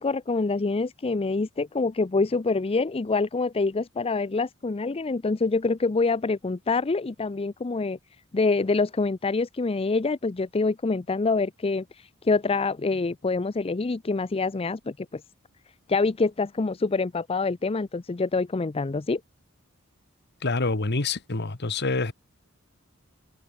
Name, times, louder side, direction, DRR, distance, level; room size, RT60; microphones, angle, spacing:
voice 1, 0.0-8.0 8.3-15.2 15.9-19.2, left 3 dB, 25° left, 0.5 m, -26 dB
voice 2, 20.4-22.1, left 3 dB, 50° left, 1.5 m, -26 dB
open air
head